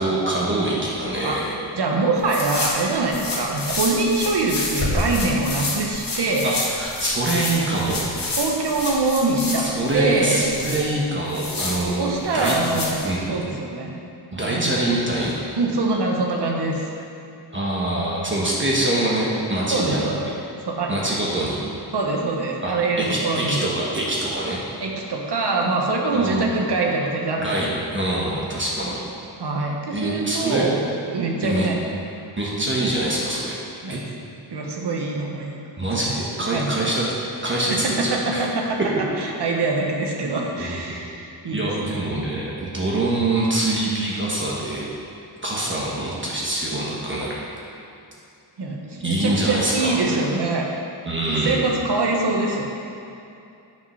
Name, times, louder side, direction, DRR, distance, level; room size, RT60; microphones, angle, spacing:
voice 1, 0.0-1.6 3.2-3.4 6.4-8.0 9.6-13.3 14.3-15.4 17.5-20.4 20.9-21.6 22.6-22.7 23.0-24.6 26.1-26.5 27.4-29.0 29.9-30.7 31.4-31.7 32.4-33.6 33.9-34.0 35.8-37.0 37.4-37.7 38.0-38.4 40.6-41.0 41.5-44.9 45.4-47.4 49.0-50.2 51.1-51.6, right 1 dB, 25° right, -5 dB, 1.2 m, -24 dB
voice 2, 1.7-6.5 8.4-10.4 12.0-13.0 13.3-14.0 14.3-14.7 15.6-16.9 19.7-20.3 20.6-21.0 21.9-23.6 24.8-27.6 29.4-30.8 31.1-31.7 33.8-34.0 34.5-35.6 36.1-36.2 36.5-36.9 37.4-38.8 39.2-42.1 48.6-50.6 51.3-52.6, right 3 dB, 65° right, 0 dB, 1.3 m, -24 dB
sound 1, 2.2-13.1, left 2 dB, 50° left, 1.6 m, -29 dB
9.2 x 5.3 x 5.6 m, 2.7 s
wide cardioid pair, 180°, 43 cm